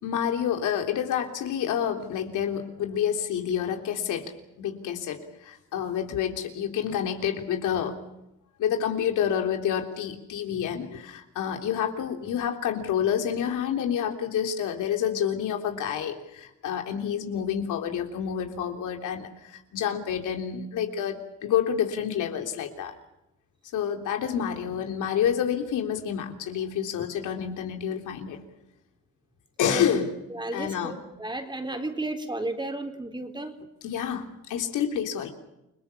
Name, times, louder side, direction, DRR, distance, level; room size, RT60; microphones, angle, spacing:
voice 1, 0.0-8.0 8.6-23.0 23.7-28.4 29.6-30.1 30.5-31.0 33.8-35.3, left 8 dB, 80° left, 4 dB, 3.4 m, -28 dB
voice 2, 30.3-33.6, right 2 dB, 15° right, 5 dB, 4.1 m, -33 dB
29.5 x 20.0 x 7.1 m, 0.88 s
cardioid pair, 90°, 30 cm